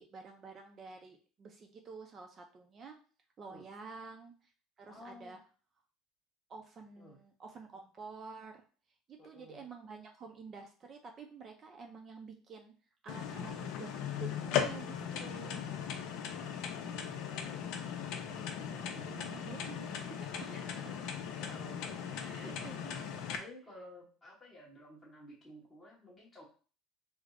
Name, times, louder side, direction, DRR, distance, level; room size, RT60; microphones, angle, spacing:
voice 1, 0.0-3.0 3.4-4.5 4.8-5.4 6.5-8.6 9.1-12.7 13.0-13.9 14.1-15.6 18.9-20.5 22.1-23.1, right 5 dB, 30° right, 3 dB, 0.4 m, -50 dB
voice 2, 4.9-5.3 7.0-7.2 9.2-9.6 16.3-17.6 18.5-19.3 20.5-22.4 23.4-26.4, left 1 dB, 10° left, -6 dB, 1.1 m, -54 dB
sound 1, 13.1-23.4, left 8 dB, 65° left, 0.5 m, -38 dB
3.3 x 2.0 x 3.7 m, 0.39 s
cardioid pair, 135°, 0 cm